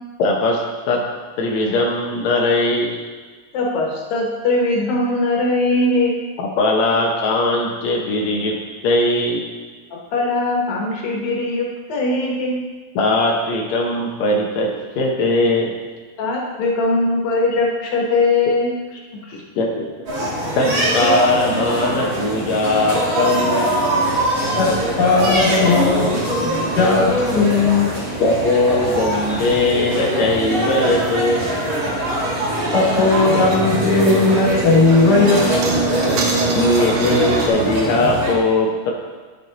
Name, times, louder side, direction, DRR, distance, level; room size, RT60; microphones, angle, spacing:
voice 1, 0.2-0.6 0.9-1.0 1.4-2.9 6.4-8.6 8.8-9.5 12.9-15.8 19.3-19.8 20.5-23.7 26.4-26.5 28.2-31.4 36.5-38.9, left 2 dB, 85° left, -1 dB, 1.5 m, -19 dB
voice 2, 3.5-6.1 9.9-12.6 16.2-18.7 19.1-19.4 23.8-23.9, left 2 dB, 70° left, -2 dB, 2.7 m, -20 dB
sound 1, 20.1-38.3, right 1 dB, 40° right, 2.1 m, -22 dB
voice 3, 25.0-27.9 32.7-35.4, left 3 dB, 30° left, -4 dB, 2.2 m, -16 dB
sound 2, 29.6-37.5, right 4 dB, 75° right, 2.9 m, -26 dB
10.5 x 7.3 x 4.0 m, 1.4 s
omnidirectional pair, 4.7 m